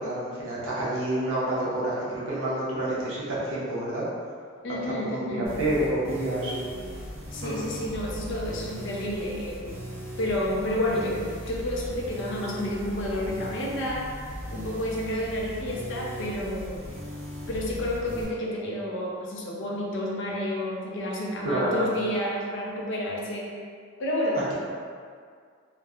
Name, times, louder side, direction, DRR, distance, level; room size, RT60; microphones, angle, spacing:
voice 1, 0.0-4.0 4.8-6.6 7.4-7.7 21.4-21.9, right 1 dB, 75° right, -7 dB, 0.7 m, -28 dB
voice 2, 4.6-5.5 7.3-9.8 10.2-14.1 14.5-16.8 17.5-23.5 24.0-24.5, left 1 dB, 60° left, -3 dB, 0.5 m, -30 dB
sound 1, 5.4-18.2, equal, 30° right, 0.7 m, -38 dB
2.9 x 2.1 x 2.3 m, 2.1 s
head